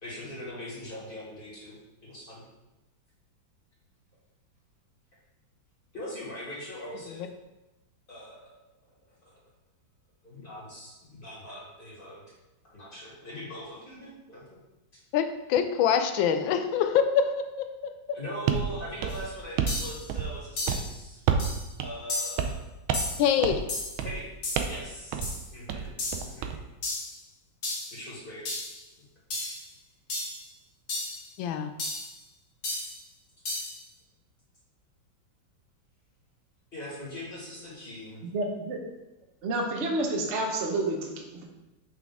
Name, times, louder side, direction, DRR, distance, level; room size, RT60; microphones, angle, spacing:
voice 1, 0.0-1.8 2.0-2.4 5.9-7.3 8.1-8.5 9.2-9.4 10.2-12.2 12.6-14.6 18.1-21.2 21.8-22.5 24.0-24.3 24.7-25.3 25.5-25.9 26.2-26.6 27.9-28.5 29.4-29.6 36.7-38.2, equal, 25° left, -6 dB, 2.0 m, -41 dB
voice 2, 15.1-18.2 23.2-23.6 31.4-31.7, left 7 dB, 80° left, 8 dB, 1.3 m, -25 dB
sound 1, 18.5-18.7 19.0-19.8 20.1-20.4 20.7-20.9 21.3-21.5 21.8-21.9 22.4-22.6 22.9-23.2 23.4-23.7 24.0-24.2 24.6-24.8 25.1-25.3 25.7-26.6, right 7 dB, 90° right, 1.4 m, -29 dB
sound 2, 19.1-19.2 19.7-20.0 20.6-20.9 21.4-21.7 22.1-22.5 22.9-23.3 23.7-24.0 24.4-24.7 25.2-25.5 26.0-26.3 26.8-27.2 27.6-28.0 28.5-28.8 29.3-29.6 30.1-30.4 30.9-31.2 31.8-32.1 32.6-33.0 33.5-33.8, left 2 dB, 45° left, 1.4 m, -33 dB
voice 3, 38.2-38.8 39.4-41.4, right 2 dB, 50° right, 1 dB, 0.9 m, -29 dB
5.9 x 4.8 x 3.5 m, 1.0 s
omnidirectional pair, 2.1 m